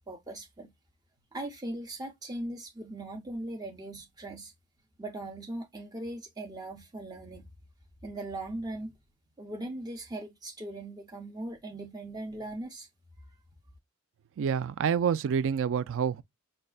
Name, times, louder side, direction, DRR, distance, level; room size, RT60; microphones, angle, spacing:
voice 1, 0.1-0.7 1.3-4.5 5.0-7.4 8.0-8.9 9.4-12.9, right 1 dB, 20° right, 0.6 m, -39 dB
voice 2, 14.4-16.2, right 7 dB, 60° right, 0.4 m, -27 dB
5.2 x 2.2 x 2.3 m
head